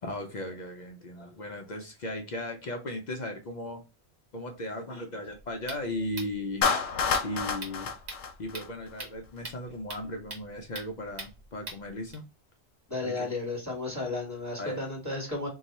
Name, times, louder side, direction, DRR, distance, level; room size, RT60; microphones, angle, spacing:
voice 1, 0.0-3.8 4.3-6.7 7.2-7.9 8.4-12.3 13.0-13.3 14.6-14.8, left 1 dB, 55° left, 0.6 m, -36 dB
sound 1, 5.2-12.1, right 2 dB, 80° right, 1.5 m, -44 dB
Clapping, 6.6-9.0, left 6 dB, 90° left, 0.9 m, -29 dB
voice 2, 12.9-15.5, left 3 dB, 15° right, 1.5 m, -33 dB
2.7 x 2.3 x 4.0 m
omnidirectional pair, 1.1 m